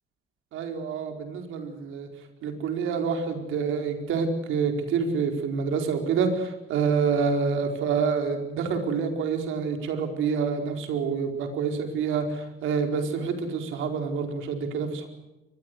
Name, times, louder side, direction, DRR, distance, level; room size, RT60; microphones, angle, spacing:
voice 1, 0.5-2.1 2.4-15.1, right 5 dB, 85° right, 5 dB, 4.5 m, -27 dB
24.5 x 20.5 x 8.1 m, 1.0 s
cardioid pair, 90°, 20 cm